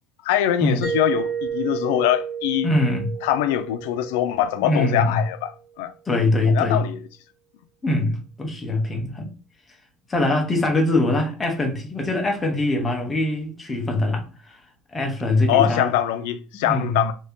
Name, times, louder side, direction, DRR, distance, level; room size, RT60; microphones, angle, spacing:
voice 1, 0.2-2.7 3.2-5.5 5.8-5.9 6.5-7.0 15.5-17.1, left 11 dB, 85° left, 0.3 m, -23 dB
Mallet percussion, 0.8-5.4, right 7 dB, 5° right, 1.1 m, -31 dB
voice 2, 2.6-3.1 4.6-5.2 6.1-6.9 7.8-9.4 10.1-14.6 14.9-15.9 16.7-17.1, left 2 dB, 10° left, 0.7 m, -23 dB
2.7 x 2.7 x 3.5 m
cardioid pair, 165°, 0 cm